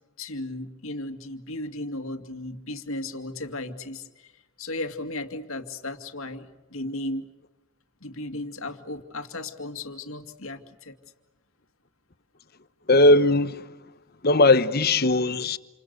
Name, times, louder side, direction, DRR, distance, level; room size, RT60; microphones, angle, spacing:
voice 1, 0.2-4.3 4.6-7.3 8.0-10.9, left 2 dB, 75° left, 2.4 m, -35 dB
voice 2, 12.9-13.7 14.2-15.6, left 2 dB, 45° left, 1.1 m, -19 dB
29.0 x 28.5 x 6.8 m
head